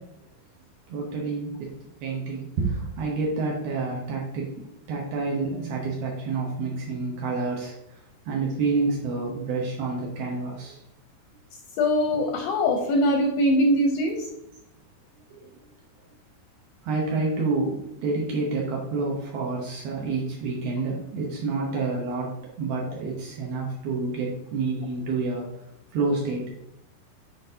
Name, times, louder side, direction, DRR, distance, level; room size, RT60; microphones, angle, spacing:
voice 1, 0.9-1.7 2.0-8.0 8.3-10.8 15.3-15.5 16.8-25.5 25.9-26.4, right 3 dB, 75° right, -2 dB, 2.6 m, -28 dB
voice 2, 11.8-14.3, left 1 dB, 80° left, 3 dB, 2.1 m, -22 dB
10.5 x 3.9 x 2.7 m, 0.83 s
omnidirectional pair, 4.8 m